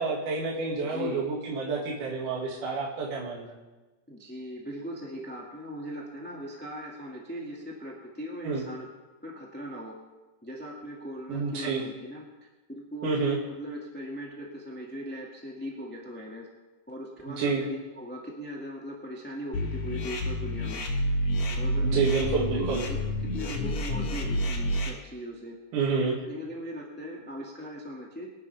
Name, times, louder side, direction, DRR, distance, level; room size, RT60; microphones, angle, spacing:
voice 1, 0.0-3.5 8.4-8.6 11.3-11.8 13.0-13.4 17.3-17.6 21.8-22.8 25.7-26.2, right 4 dB, 75° right, -4 dB, 3.6 m, -29 dB
voice 2, 0.8-1.2 4.1-8.9 9.2-10.0 10.4-12.2 12.7-16.5 16.9-20.9 21.5-22.0 22.5-23.0 23.3-25.6 26.2-28.3, equal, 5° left, -3 dB, 1.2 m, -39 dB
sound 1, 19.5-24.9, equal, 60° left, 2.5 m, -29 dB
24.5 x 11.0 x 3.5 m, 1.1 s
omnidirectional pair, 3.8 m